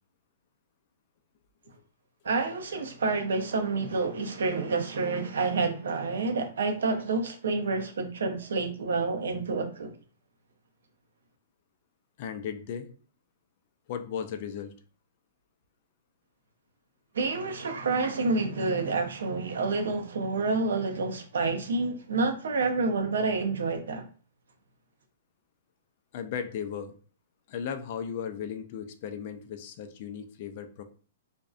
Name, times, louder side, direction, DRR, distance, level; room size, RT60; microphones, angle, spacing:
voice 1, 2.2-9.9 17.1-24.1, right 3 dB, 90° right, 0.6 m, -28 dB
voice 2, 12.2-12.9 13.9-14.7 26.1-27.0 27.5-30.8, left 7 dB, 40° left, 0.3 m, -36 dB
2.5 x 2.1 x 2.4 m
hypercardioid pair, 165°, 0 cm